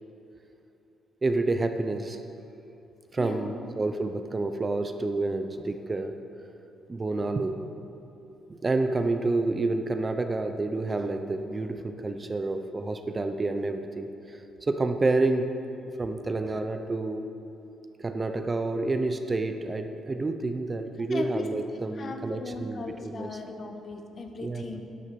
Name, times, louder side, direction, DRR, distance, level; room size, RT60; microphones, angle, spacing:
voice 1, 1.2-2.2 3.1-6.1 6.9-7.6 8.5-14.4 14.7-15.5 16.0-17.3 18.0-23.3 24.4-24.7, right 2 dB, 25° right, 7 dB, 0.7 m, -29 dB
voice 2, 3.2-3.7 21.1-21.5 21.9-24.8, left 3 dB, 45° left, 4 dB, 1.3 m, -37 dB
11.0 x 8.5 x 7.0 m, 2.9 s
cardioid pair, 90°, 0 cm